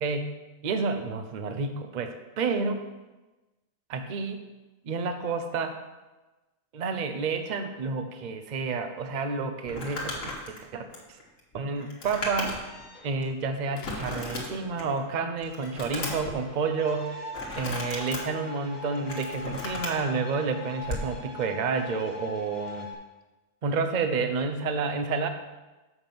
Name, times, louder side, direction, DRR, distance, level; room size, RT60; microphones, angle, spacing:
voice 1, 0.0-0.3 0.6-2.8 3.9-4.4 4.8-5.8 6.7-10.1 10.5-10.8 11.5-12.6 13.0-17.3 17.5-22.9 23.6-25.3, right 4 dB, 55° right, 7 dB, 0.5 m, -30 dB
Crumpling crinkling, 9.6-12.8 13.2-13.3 13.8-15.0 15.4-16.3 17.3-18.2 18.8-20.0 20.8-21.1, left 2 dB, 60° left, 1.8 m, -35 dB
sound 1, 12.6-23.0, left 3 dB, 30° left, 1.6 m, -42 dB
sound 2, 13.8-15.1 16.4-16.5, left 6 dB, 85° left, 1.2 m, -48 dB
7.0 x 5.3 x 5.9 m, 1.1 s
omnidirectional pair, 1.6 m